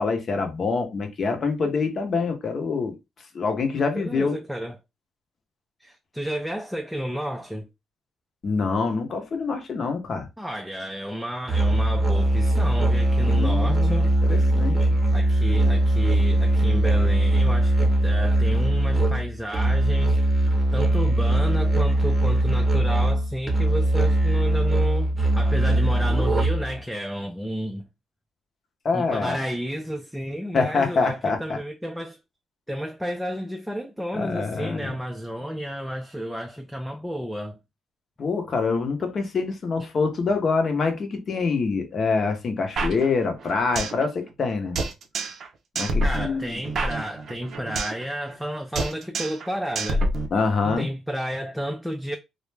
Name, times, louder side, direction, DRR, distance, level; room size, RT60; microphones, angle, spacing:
voice 1, 0.0-2.9 3.3-4.4 8.4-10.3 13.2-14.9 28.8-29.4 30.5-31.6 34.1-34.9 38.2-44.8 45.8-46.6 50.3-50.9, left 4 dB, 50° left, 0.7 m, -25 dB
voice 2, 3.9-4.8 5.8-7.7 10.4-14.1 15.1-27.8 28.9-32.2 32.7-37.6 46.0-50.1 50.8-52.2, equal, ahead, 0.4 m, -31 dB
Musical instrument, 11.5-26.8, right 1 dB, 20° right, 0.7 m, -21 dB
sound 1, 42.8-44.0 44.3-44.4 44.8-45.5 45.8-48.0 48.3-48.5 48.8-49.5 49.8-50.8, right 1 dB, 60° right, 0.5 m, -27 dB
2.4 x 2.1 x 3.2 m
cardioid pair, 90°, 0 cm